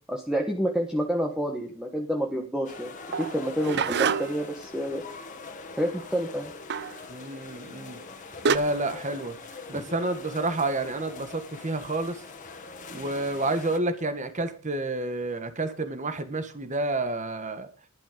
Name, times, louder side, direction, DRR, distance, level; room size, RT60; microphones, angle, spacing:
voice 1, 0.1-2.9 3.2-5.0 5.8-6.5 9.7-9.8, equal, 5° right, 1 dB, 1.3 m, -28 dB
sound 1, 2.6-13.8, left 4 dB, 40° left, 1.7 m, -43 dB
sound 2, 3.1-4.5 6.7-7.0 8.0-8.1 8.5-8.6, right 5 dB, 55° right, 0.6 m, -26 dB
voice 2, 7.1-8.0 8.5-9.3 9.7-12.2 12.9-17.7, right 2 dB, 35° right, 10 dB, 1.5 m, -29 dB
11.5 x 11.5 x 5.1 m, 0.40 s
head